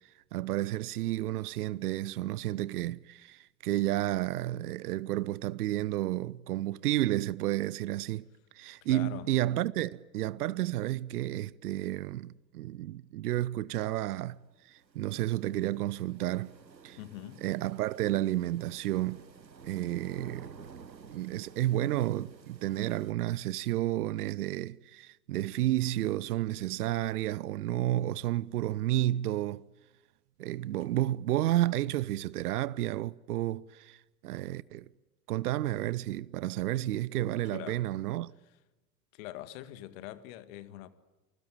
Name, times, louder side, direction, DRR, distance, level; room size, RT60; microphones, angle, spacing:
voice 1, 0.3-8.3 8.5-14.4 14.6-16.5 16.8-17.0 17.4-19.2 19.6-20.5 21.1-29.6 30.4-34.9 35.3-38.3, right 14 dB, 65° right, 0.8 m, -31 dB
voice 2, 8.8-9.3 17.0-17.5 37.5-37.9 39.1-40.9, left 14 dB, 50° left, 2.0 m, -43 dB
sound 1, 14.2-23.1, right 6 dB, 85° right, 1.2 m, -52 dB
29.0 x 20.5 x 9.1 m
figure-of-eight pair, 80°, 50 cm